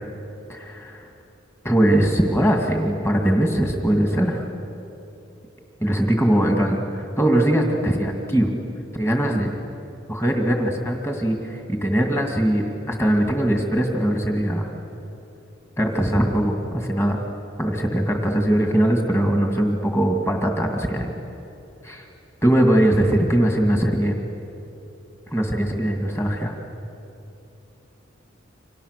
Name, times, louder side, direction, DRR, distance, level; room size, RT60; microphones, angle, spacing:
voice 1, 0.5-1.1 1.6-4.5 5.8-8.5 8.9-9.5 10.1-14.7 15.8-17.2 17.6-21.1 21.8-22.1 22.4-24.2 25.3-26.5, right 1 dB, 15° left, 2 dB, 2.2 m, -21 dB
29.5 x 26.0 x 6.7 m, 2.8 s
head